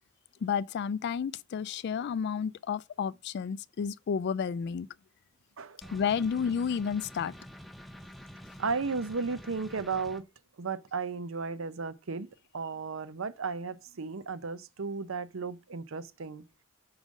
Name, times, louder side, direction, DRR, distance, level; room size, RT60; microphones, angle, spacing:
voice 1, 0.4-4.9 5.9-7.3, left 7 dB, 55° left, 0.3 m, -31 dB
voice 2, 5.6-6.0 8.6-10.2 10.6-12.3 12.5-16.4, right 4 dB, 75° right, 0.7 m, -34 dB
sound 1, 5.8-10.2, equal, ahead, 0.6 m, -48 dB
5.3 x 4.9 x 6.3 m
head